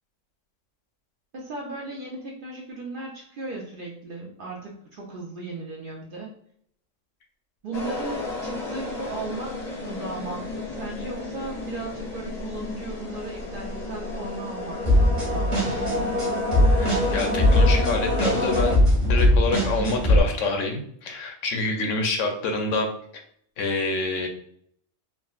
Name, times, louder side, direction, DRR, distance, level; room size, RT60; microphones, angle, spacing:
voice 1, 1.3-6.3 7.6-16.1, right 2 dB, 55° right, -2 dB, 0.6 m, -36 dB
sound 1, 7.7-18.8, left 2 dB, 40° left, 0.6 m, -30 dB
sound 2, 14.9-20.2, left 1 dB, 40° right, 1.1 m, -21 dB
voice 2, 16.7-22.9 23.6-24.3, left 3 dB, 75° left, 3 dB, 0.9 m, -27 dB
3.6 x 2.1 x 2.3 m, 0.65 s
omnidirectional pair, 1.3 m